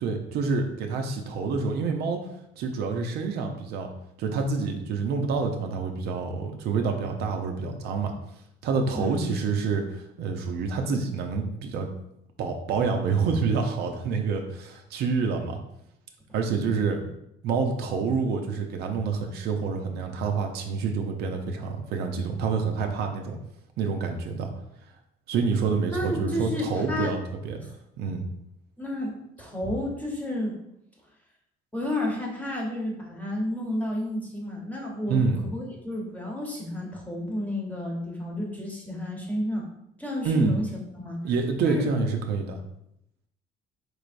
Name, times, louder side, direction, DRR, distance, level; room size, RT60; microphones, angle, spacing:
voice 1, 0.0-2.2 2.6-3.9 4.2-8.1 8.6-11.9 12.4-15.6 16.3-17.1 17.4-23.4 23.8-24.5 25.3-27.6 28.0-28.3 35.1-35.4 40.2-40.5 41.2-42.6, right 4 dB, 75° right, 4 dB, 0.5 m, -27 dB
voice 2, 8.9-9.4 25.9-27.2 27.6-27.7 28.8-30.6 31.7-39.7 40.0-40.7 40.9-41.3 41.6-41.9, left 1 dB, 10° left, -1 dB, 1.0 m, -31 dB
4.5 x 3.2 x 2.5 m, 0.79 s
cardioid pair, 110°, 17 cm